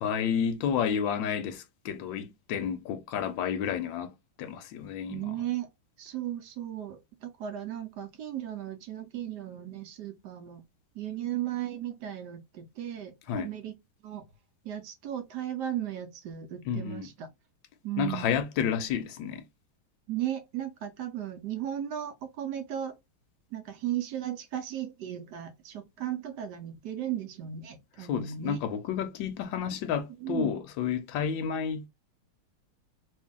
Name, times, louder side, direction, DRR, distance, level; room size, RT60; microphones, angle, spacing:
voice 1, 0.0-4.1 4.4-5.2 13.3-13.5 16.7-17.1 18.0-19.4 28.0-31.9, left 7 dB, 75° left, 1.2 m, -31 dB
voice 2, 5.1-5.7 6.0-10.6 10.9-13.7 14.0-14.2 14.6-17.3 17.8-18.3 20.1-23.0 23.5-28.6 30.2-30.5, right 11 dB, 70° right, 1.0 m, -36 dB
3.0 x 2.6 x 3.6 m
omnidirectional pair, 2.3 m